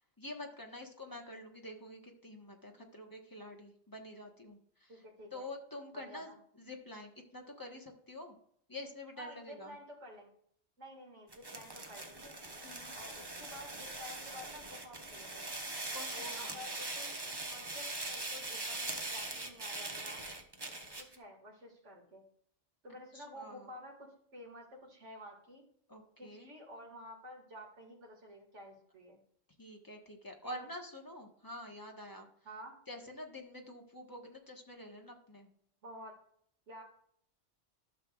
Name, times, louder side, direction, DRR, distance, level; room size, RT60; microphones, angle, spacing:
voice 1, 0.2-5.0 5.3-8.4 8.7-9.7 12.6-13.0 15.9-16.6 23.1-23.7 25.9-26.5 29.6-32.3 32.9-35.5, left 1 dB, 20° left, 1 dB, 1.2 m, -47 dB
voice 2, 4.9-5.5 5.9-6.4 9.2-10.3 10.8-12.4 12.9-15.5 16.1-17.2 17.5-20.3 21.0-22.2 22.8-25.6 26.2-29.2 30.4-30.7 32.4-32.7 35.8-36.1 36.7-36.8, equal, 80° right, -2 dB, 2.5 m, -51 dB
sound 1, 11.3-21.2, right 2 dB, 20° right, 0.9 m, -42 dB
12.5 x 6.6 x 2.4 m, 0.64 s
omnidirectional pair, 1.2 m